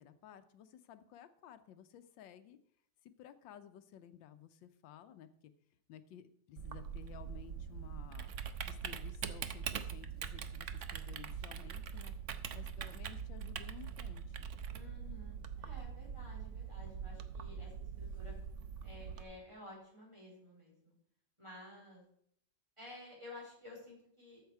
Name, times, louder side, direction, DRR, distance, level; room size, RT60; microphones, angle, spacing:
voice 1, 0.0-2.6 3.0-5.5 5.9-8.3 8.7-12.2 12.5-14.5, left 9 dB, 90° left, 11 dB, 1.5 m, -55 dB
Typing, 6.6-19.2, right 7 dB, 60° right, 0.8 m, -43 dB
voice 2, 14.7-18.3 18.8-20.9 21.4-22.0 22.8-24.4, left 2 dB, 15° right, -3 dB, 4.3 m, -53 dB
13.0 x 7.3 x 4.7 m, 0.67 s
omnidirectional pair, 2.0 m